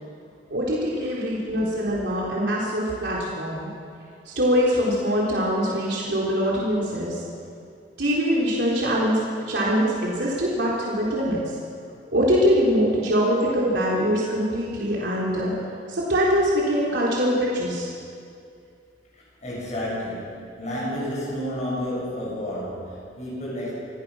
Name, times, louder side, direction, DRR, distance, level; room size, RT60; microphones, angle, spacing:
voice 1, 0.5-3.7 4.3-7.2 8.0-9.2 9.5-11.4 12.1-15.5 15.9-17.9, equal, 70° right, -5 dB, 4.0 m, -23 dB
voice 2, 19.2-23.7, equal, 40° left, -6 dB, 7.4 m, -31 dB
26.0 x 16.0 x 6.4 m, 2.4 s
head